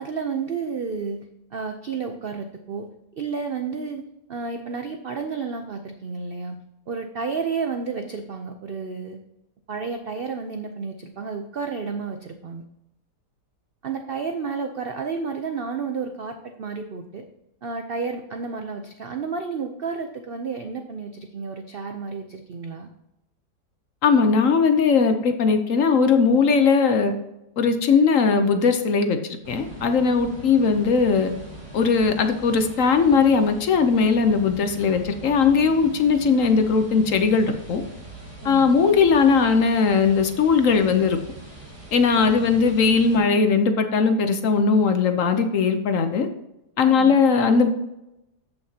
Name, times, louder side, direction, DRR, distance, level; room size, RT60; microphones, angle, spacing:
voice 1, 0.0-9.2 9.7-12.6 13.8-17.3 17.6-22.9 38.4-38.7 42.3-42.5 46.8-47.3, right 5 dB, 70° right, 6 dB, 0.5 m, -31 dB
voice 2, 24.0-27.1 27.6-31.3 31.7-37.8 38.4-41.2 41.9-46.3 46.8-47.7, left 5 dB, 60° left, 7 dB, 1.0 m, -19 dB
sound 1, 29.4-43.2, right 1 dB, 35° right, 3.6 m, -42 dB
13.5 x 5.8 x 2.8 m, 0.89 s
omnidirectional pair, 1.8 m